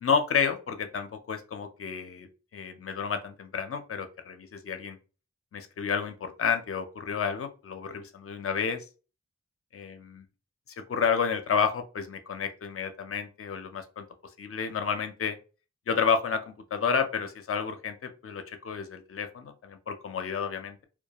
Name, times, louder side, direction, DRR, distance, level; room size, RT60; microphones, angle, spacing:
voice 1, 0.0-5.0 5.5-8.8 9.7-10.2 10.8-14.1 14.4-15.4 15.9-20.8, left 6 dB, 50° left, 8 dB, 0.5 m, -30 dB
2.2 x 2.2 x 2.8 m, 0.35 s
cardioid pair, 45°, 29 cm